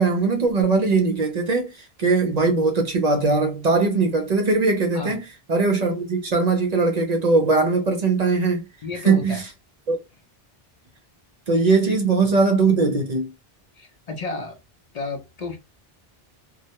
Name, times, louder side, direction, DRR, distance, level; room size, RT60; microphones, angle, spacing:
voice 1, 0.0-8.7 9.0-9.4 9.9-10.0 11.5-13.3, right 3 dB, 50° right, 0.5 m, -20 dB
voice 2, 8.8-9.4 11.9-12.0 12.3-12.4 13.7-14.6 14.9-15.6, left 3 dB, 50° left, 0.5 m, -32 dB
2.1 x 2.1 x 2.8 m
omnidirectional pair, 1.0 m